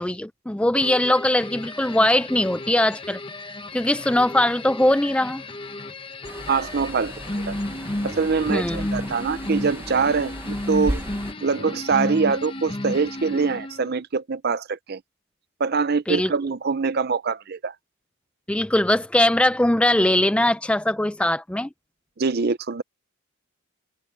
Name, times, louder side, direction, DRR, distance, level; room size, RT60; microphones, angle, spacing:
voice 1, 0.0-3.2 3.7-5.4 8.5-8.9 16.1-16.3 18.5-21.7, left 1 dB, 5° left, 0.3 m, -21 dB
sound 1, 0.8-14.0, left 1 dB, 25° left, 0.9 m, -33 dB
sound 2, 6.2-11.3, right 1 dB, 10° right, 0.9 m, -36 dB
voice 2, 6.5-7.1 7.5-7.6 8.0-11.0 11.4-15.0 15.6-17.7 22.2-22.8, right 5 dB, 45° right, 0.6 m, -24 dB
head